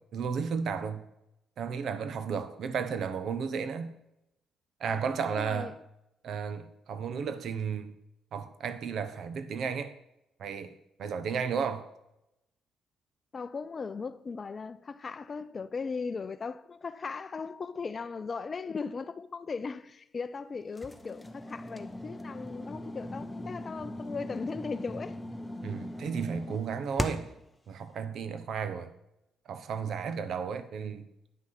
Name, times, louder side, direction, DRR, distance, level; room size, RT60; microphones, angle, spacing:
voice 1, 0.1-1.0 1.6-3.9 4.8-5.7 6.2-7.9 8.3-9.9 10.4-10.7 11.0-11.9 25.6-27.3 27.7-28.9 29.5-31.1, right 6 dB, 65° right, 1.0 m, -33 dB
voice 2, 5.4-5.8 13.3-25.2, left 5 dB, 40° left, 0.5 m, -38 dB
sound 1, 20.8-27.4, left 1 dB, 10° left, 0.9 m, -39 dB
9.5 x 6.3 x 5.9 m
cardioid pair, 90°, 0 cm